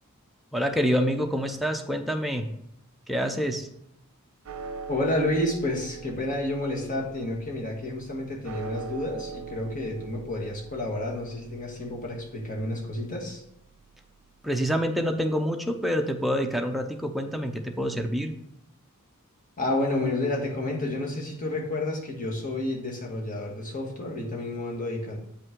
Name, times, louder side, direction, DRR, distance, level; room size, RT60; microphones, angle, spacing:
voice 1, 0.5-2.5 3.1-3.7 14.4-18.3, equal, ahead, 3 dB, 0.6 m, -27 dB
sound 1, 4.4-14.9, right 6 dB, 70° right, 0.6 m, -43 dB
voice 2, 4.9-13.4 19.6-25.2, left 1 dB, 40° left, -1 dB, 1.6 m, -30 dB
8.5 x 5.5 x 3.7 m, 0.77 s
head